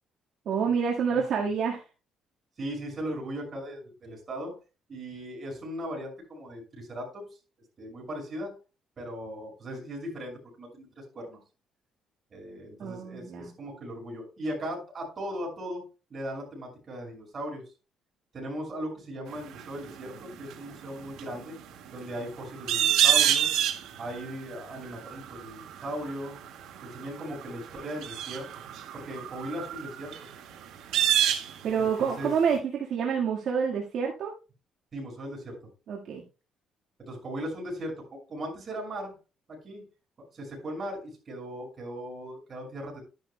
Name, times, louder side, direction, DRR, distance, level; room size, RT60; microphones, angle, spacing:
voice 1, 0.4-1.8 12.8-13.5 31.6-34.3 35.9-36.2, right 6 dB, 60° right, -2 dB, 1.6 m, -28 dB
voice 2, 2.6-4.5 4.9-7.3 7.8-8.5 9.0-11.4 12.3-15.8 16.1-17.6 18.3-20.1 20.4-21.6 21.9-23.5 24.0-26.4 26.8-28.6 28.9-30.1 31.8-32.3 34.9-35.6 37.0-39.1 39.5-39.8 40.3-43.0, equal, 30° right, 0 dB, 5.8 m, -38 dB
sound 1, 19.3-32.3 32.5-32.6, right 10 dB, 85° right, 1.9 m, -28 dB
12.5 x 10.5 x 2.2 m, 0.31 s
cardioid pair, 150°, 0 cm